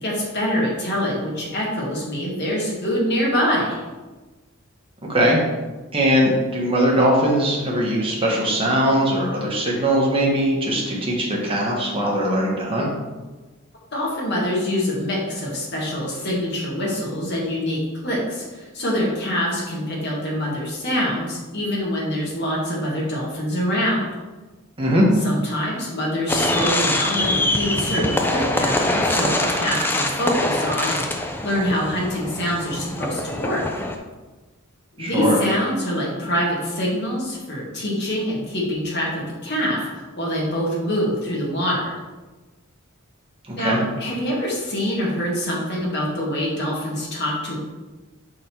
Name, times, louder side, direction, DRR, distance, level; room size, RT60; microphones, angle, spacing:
voice 1, 0.0-3.8 13.9-17.8 18.0-24.1 25.2-33.6 34.9-42.0 43.5-47.6, equal, 50° left, -4 dB, 1.8 m, -25 dB
voice 2, 5.9-12.9 24.8-25.1 35.0-35.4 43.5-43.8, equal, 25° right, -3 dB, 1.3 m, -20 dB
sound 1, 26.3-34.0, left 1 dB, 10° left, 0.4 m, -24 dB
5.3 x 3.9 x 4.5 m, 1.2 s
head